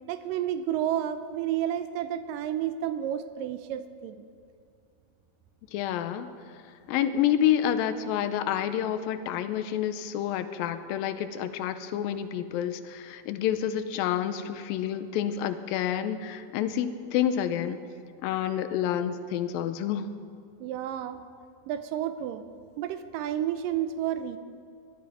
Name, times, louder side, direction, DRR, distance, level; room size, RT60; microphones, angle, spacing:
voice 1, 0.1-4.2 20.6-21.2 21.7-22.4 22.8-24.4, right 10 dB, 80° right, 11 dB, 2.1 m, -31 dB
voice 2, 5.7-6.3 6.9-17.8 18.2-20.1, left 10 dB, 90° left, 11 dB, 2.4 m, -28 dB
18.0 x 11.5 x 4.9 m, 2.4 s
omnidirectional pair, 4.1 m